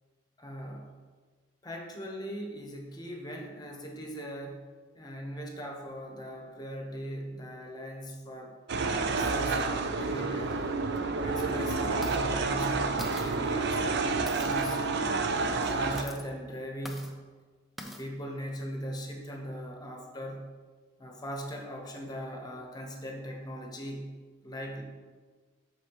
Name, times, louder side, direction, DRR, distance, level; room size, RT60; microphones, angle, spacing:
voice 1, 0.4-0.9 1.6-4.7 4.9-8.6 9.0-10.8 11.2-14.8 15.3-17.2 17.8-20.5 21.0-24.1 24.4-24.8, equal, 20° left, 2 dB, 0.9 m, -40 dB
sound 1, 8.7-16.0, right 3 dB, 55° right, 0.5 m, -29 dB
sound 2, 10.4-10.5 11.0-11.1 11.8-12.2 12.6-12.7 13.0-13.4 14.3-14.9 15.8-16.2 16.9-17.1 17.8-18.0, left 1 dB, ahead, 0.5 m, -44 dB
12.0 x 4.3 x 3.0 m, 1.4 s
head